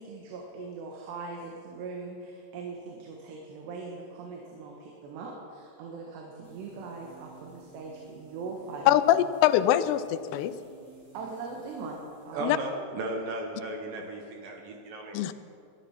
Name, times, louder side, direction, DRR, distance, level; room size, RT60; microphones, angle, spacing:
voice 1, 0.0-9.3 11.1-12.6 14.0-14.1, right 4 dB, 85° right, 0 dB, 3.7 m, -41 dB
sound 1, 6.4-12.3, right 4 dB, 30° right, 4.6 m, -54 dB
voice 2, 8.9-10.5 12.4-12.6 15.1-15.5, left 12 dB, 90° left, 13 dB, 2.8 m, -23 dB
voice 3, 12.3-15.2, right 2 dB, 65° right, 2 dB, 2.7 m, -35 dB
20.0 x 12.5 x 5.9 m, 2.5 s
omnidirectional pair, 4.7 m